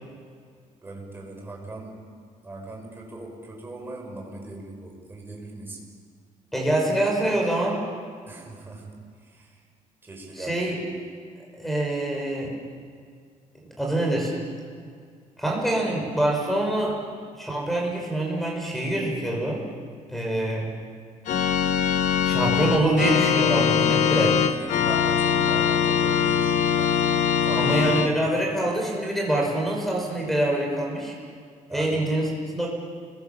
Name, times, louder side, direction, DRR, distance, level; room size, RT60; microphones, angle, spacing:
voice 1, 0.8-2.1 2.4-5.8 8.3-9.6 10.0-10.6 23.8-27.0 27.4-27.8 31.7-32.0, right 2 dB, 15° right, 0 dB, 5.3 m, -40 dB
voice 2, 6.5-7.8 10.4-10.8 11.6-12.5 13.8-14.3 15.4-17.0 17.4-19.6 20.1-20.7 22.2-24.3 27.6-31.1 31.7-32.7, right 1 dB, ahead, -1 dB, 6.0 m, -25 dB
Organ, 21.3-28.1, left 8 dB, 70° left, 1.5 m, -22 dB
30.0 x 22.0 x 7.2 m, 2.1 s
cardioid pair, 175°, 13 cm